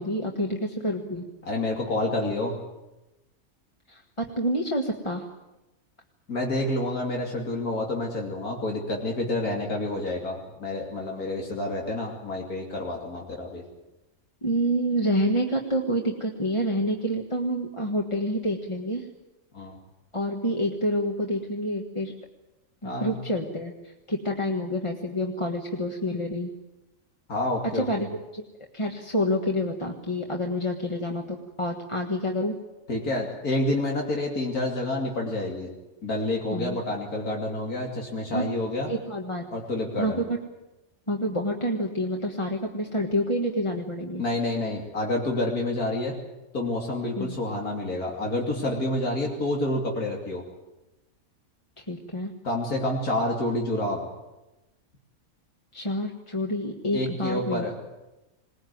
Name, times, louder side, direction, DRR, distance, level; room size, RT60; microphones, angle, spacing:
voice 1, 0.0-1.3 3.9-5.2 14.4-19.1 20.1-22.1 22.8-26.5 27.7-28.1 28.3-28.5 28.7-32.6 36.5-36.8 38.3-38.4 38.9-39.5 40.0-40.4 41.1-44.2 47.2-47.4 51.8-52.3 55.7-57.6, equal, 20° left, 1 dB, 1.6 m, -28 dB
voice 2, 1.4-2.5 6.3-13.6 19.5-19.8 22.8-23.1 27.3-27.8 32.9-35.7 36.0-38.9 39.5-40.2 44.2-46.2 46.5-50.4 52.4-54.0 56.9-57.9, left 1 dB, 85° left, -1 dB, 3.3 m, -28 dB
21.0 x 19.5 x 9.5 m, 0.99 s
omnidirectional pair, 1.5 m